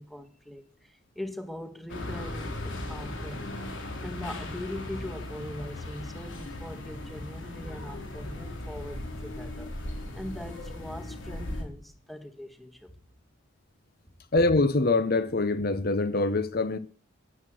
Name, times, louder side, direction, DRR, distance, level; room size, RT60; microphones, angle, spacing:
voice 1, 0.0-3.5 4.0-9.7 10.1-12.9, left 1 dB, ahead, 1.6 m, -41 dB
sound 1, 1.9-11.6, left 1 dB, 65° left, 4.6 m, -37 dB
voice 2, 14.3-16.8, left 2 dB, 45° left, 0.9 m, -24 dB
15.0 x 11.0 x 6.3 m
head